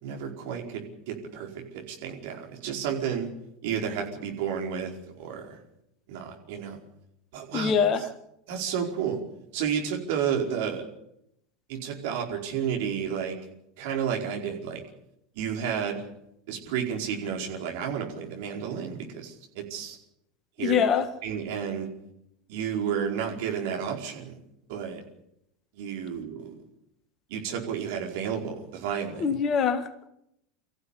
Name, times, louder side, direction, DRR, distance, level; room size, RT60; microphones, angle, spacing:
voice 1, 0.0-3.3 3.6-4.9 5.2-5.6 6.1-6.8 7.3-7.7 8.0-8.1 8.5-9.2 9.5-10.8 11.7-13.4 13.8-14.8 15.3-16.1 16.5-20.0 20.6-20.8 21.2-21.9 22.5-24.4 24.7-25.0 25.7-26.5 27.3-29.4, right 8 dB, 55° right, 1 dB, 4.9 m, -31 dB
voice 2, 7.5-8.0 20.6-21.1 29.2-30.1, left 7 dB, 35° left, 11 dB, 1.9 m, -24 dB
24.5 x 15.0 x 8.6 m, 0.79 s
figure-of-eight pair, 80°, 0 cm